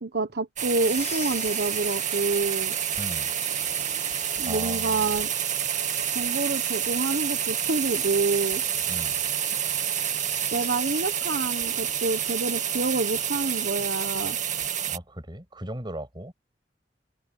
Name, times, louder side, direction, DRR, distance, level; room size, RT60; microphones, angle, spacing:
voice 1, 0.0-2.7 4.4-5.3 6.1-8.6 10.5-14.4, right 3 dB, 65° right, 1.2 m, -28 dB
sound 1, 0.6-15.0, right 9 dB, 45° right, 2.1 m, -28 dB
sound 2, 0.8-13.9, left 8 dB, 40° left, 8.0 m, -45 dB
voice 2, 3.0-3.3 4.5-5.2 8.9-9.2 14.9-16.3, right 1 dB, 25° right, 7.3 m, -37 dB
open air
head